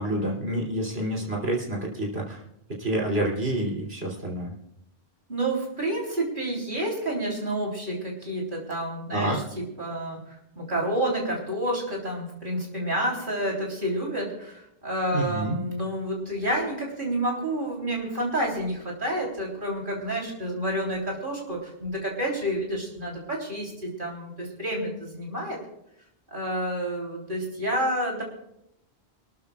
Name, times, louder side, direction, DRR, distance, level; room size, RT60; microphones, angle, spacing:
voice 1, 0.0-2.4 2.8-4.5 9.1-9.4 15.1-15.6, right 1 dB, 65° right, -2 dB, 3.5 m, -28 dB
voice 2, 5.3-25.6 26.3-28.2, right 1 dB, 50° right, -1 dB, 3.6 m, -29 dB
27.0 x 13.0 x 2.4 m, 0.81 s
omnidirectional pair, 1.1 m